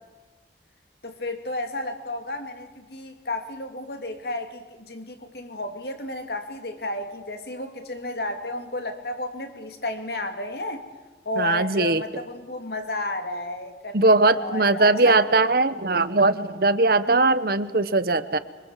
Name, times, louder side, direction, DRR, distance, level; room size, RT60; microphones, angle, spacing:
voice 1, 1.0-10.8 11.2-15.5, left 2 dB, 60° left, 6 dB, 2.8 m, -32 dB
voice 2, 11.4-12.0 13.9-18.4, right 3 dB, 55° right, 13 dB, 1.1 m, -20 dB
25.5 x 24.5 x 7.5 m, 1.3 s
head